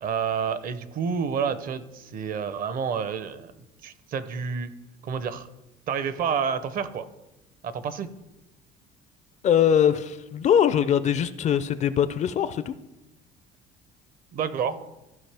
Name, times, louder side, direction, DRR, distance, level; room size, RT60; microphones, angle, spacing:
voice 1, 0.0-3.5 3.8-4.7 5.0-5.5 5.9-7.1 7.6-8.1 14.3-14.8, right 6 dB, 50° right, 0.7 m, -29 dB
voice 2, 9.4-12.7, left 9 dB, 40° left, 0.4 m, -22 dB
14.0 x 5.1 x 3.4 m
cardioid pair, 125°, 19 cm